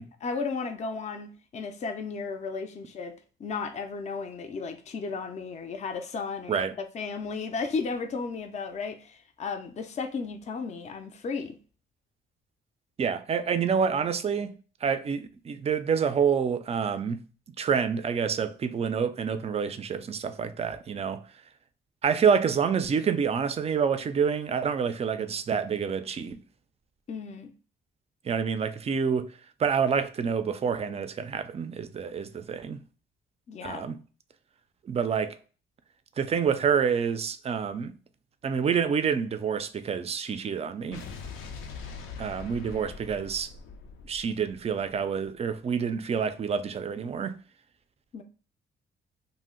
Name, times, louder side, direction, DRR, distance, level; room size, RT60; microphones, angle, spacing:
voice 1, 0.2-3.1 3.4-6.6 6.9-11.6 27.1-27.5 33.5-33.9 48.1-48.2, left 4 dB, 35° left, 0.4 m, -34 dB
voice 2, 13.0-17.2 17.6-21.2 22.0-26.4 28.2-29.3 29.6-32.8 33.6-34.0 34.9-35.4 36.2-37.9 38.4-41.1 42.2-43.5 44.1-47.4, right 6 dB, 30° right, 0.3 m, -27 dB
Explosion, 40.9-45.3, left 5 dB, 85° left, 0.5 m, -42 dB
2.6 x 2.0 x 3.6 m
cardioid pair, 90°, 20 cm